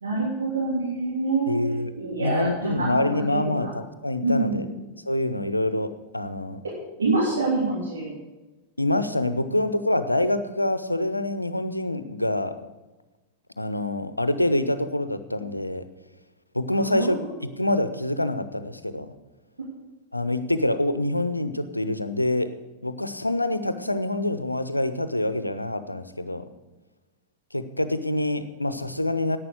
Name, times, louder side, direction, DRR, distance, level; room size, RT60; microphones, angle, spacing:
voice 1, 0.0-1.5 2.0-3.7 4.2-4.7 7.0-8.1 16.7-17.3, right 3 dB, 75° right, -6 dB, 3.1 m, -26 dB
voice 2, 1.5-1.9 2.2-4.6 5.1-6.6 8.8-12.6 13.6-15.8 16.5-17.2 17.6-19.1 20.1-22.5 22.8-26.4 27.5-29.4, left 1 dB, 85° left, 12 dB, 0.7 m, -26 dB
11.0 x 9.0 x 6.4 m, 1.1 s
figure-of-eight pair, 90°, 0 cm